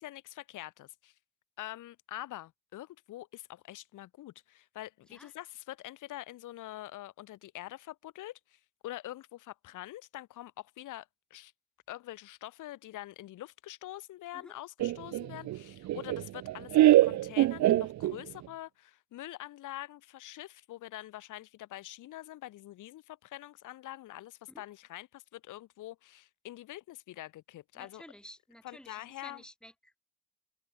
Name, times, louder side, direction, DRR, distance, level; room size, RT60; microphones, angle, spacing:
voice 1, 0.0-1.1 1.6-11.5 11.9-28.0 28.6-29.4, left 15 dB, 85° left, 4.8 m, -45 dB
Laughter, 14.8-18.5, right 14 dB, 65° right, 0.6 m, -25 dB
voice 2, 27.7-30.0, equal, 5° left, 5.1 m, -53 dB
cardioid pair, 90°, 30 cm